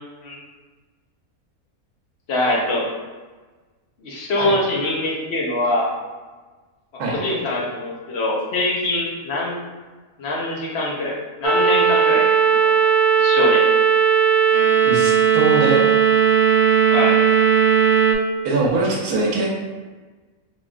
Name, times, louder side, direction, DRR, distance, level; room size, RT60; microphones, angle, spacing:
voice 1, 2.3-2.8 4.0-6.0 7.1-9.6 10.2-12.7 13.1-13.6 16.9-17.2, left 2 dB, 55° left, -3 dB, 0.9 m, -23 dB
sound 1, 11.4-18.1, right 7 dB, 65° right, 0.4 m, -16 dB
voice 2, 14.8-15.8 18.4-19.5, right 3 dB, 90° right, -2 dB, 1.3 m, -22 dB
4.1 x 3.0 x 2.3 m, 1.3 s
omnidirectional pair, 1.5 m